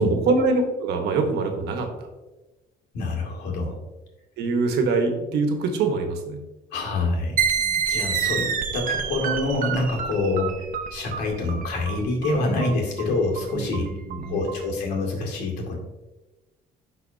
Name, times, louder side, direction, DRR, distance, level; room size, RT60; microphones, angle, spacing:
voice 1, 0.0-2.1 4.4-6.4 13.5-14.4, right 3 dB, 75° right, 4 dB, 1.2 m, -24 dB
voice 2, 2.9-3.8 6.7-13.9 14.2-15.8, left 2 dB, 85° left, -1 dB, 2.2 m, -26 dB
sound 1, 7.4-14.6, right 7 dB, 55° right, 0.8 m, -28 dB
11.5 x 4.0 x 2.7 m, 1.1 s
cardioid pair, 110°, 17 cm